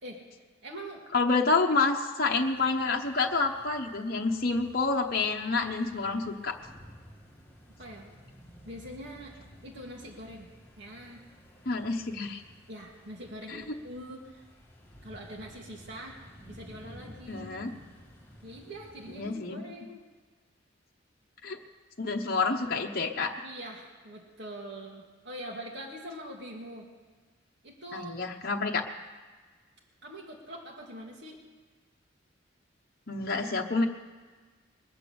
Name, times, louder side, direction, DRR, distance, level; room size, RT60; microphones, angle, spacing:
voice 1, 0.6-1.1 7.8-8.1 8.6-9.4 9.6-10.5 10.8-11.2 12.7-14.5 15.0-16.2 16.5-17.6 18.4-20.0 23.4-26.9 27.6-28.2 30.0-31.4, right 1 dB, 60° right, -1 dB, 2.0 m, -43 dB
voice 2, 1.1-6.6 11.7-12.4 13.5-13.6 17.3-17.7 19.1-19.6 21.4-21.6 22.0-23.5 27.9-28.8 33.1-33.9, left 3 dB, 50° left, 1 dB, 1.0 m, -28 dB
sound 1, 2.3-19.3, equal, 10° left, 2.4 m, -53 dB
21.5 x 8.2 x 7.0 m, 1.4 s
head